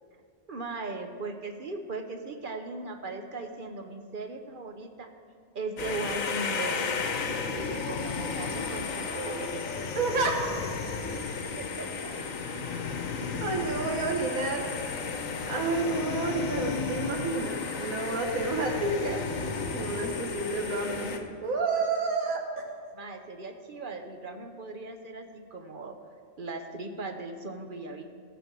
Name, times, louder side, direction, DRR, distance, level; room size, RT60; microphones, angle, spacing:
voice 1, 0.5-5.1 5.5-6.8 7.3-9.6 11.1-12.4 22.9-26.0 26.4-28.0, right 3 dB, 45° right, 5 dB, 1.0 m, -38 dB
sound 1, 5.8-21.2, left 5 dB, 80° left, 1.4 m, -33 dB
voice 2, 10.0-10.5 13.4-14.6 15.5-19.2 19.7-21.1 21.4-22.4, right 3 dB, 90° right, 2 dB, 1.9 m, -29 dB
15.5 x 5.2 x 7.5 m, 2.1 s
omnidirectional pair, 1.4 m